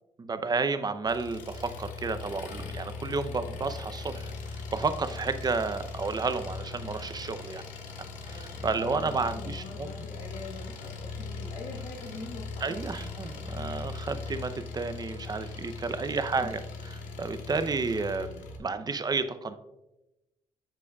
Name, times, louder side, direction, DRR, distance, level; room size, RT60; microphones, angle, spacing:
voice 1, 0.2-7.6 8.3-9.9 12.6-16.6 17.2-19.6, right 4 dB, 30° right, 10 dB, 0.7 m, -31 dB
Engine, 1.1-18.6, left 4 dB, 85° left, 1.1 m, -40 dB
voice 2, 8.2-13.1 16.1-16.6, left 3 dB, 60° left, -1 dB, 1.4 m, -44 dB
14.5 x 4.9 x 2.4 m, 0.96 s
cardioid pair, 75°, 13 cm